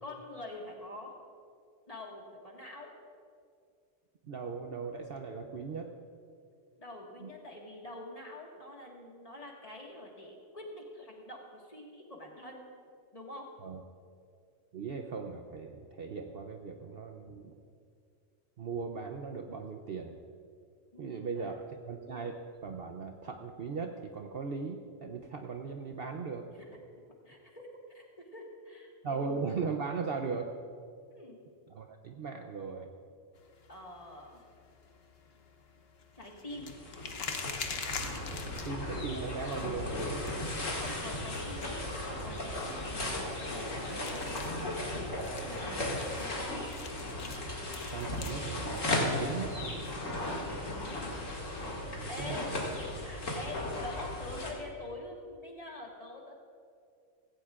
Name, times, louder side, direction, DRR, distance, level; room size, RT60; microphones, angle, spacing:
voice 1, 0.0-1.1 1.9-2.9 6.8-12.6 13.1-13.5 20.9-21.6 27.2-28.1 28.3-29.5 31.1-31.4 33.7-34.4 36.2-36.7 40.7-44.3 44.9-46.7 50.4-51.0 52.1-52.5 53.0-56.3, left 1 dB, 30° left, -1 dB, 1.7 m, -46 dB
voice 2, 4.2-5.9 7.2-7.3 13.6-13.8 14.7-17.5 18.6-20.2 21.0-22.3 22.6-26.5 29.0-30.5 31.7-32.9 38.4-40.3 45.3-45.5 47.9-49.8 51.9-52.6, right 5 dB, 55° right, 4 dB, 0.8 m, -38 dB
sound 1, 33.4-51.8, left 5 dB, 55° left, 1.0 m, -47 dB
sound 2, 36.5-54.5, left 1 dB, 70° left, 2.5 m, -36 dB
16.5 x 16.5 x 2.5 m, 2.3 s
omnidirectional pair, 1.4 m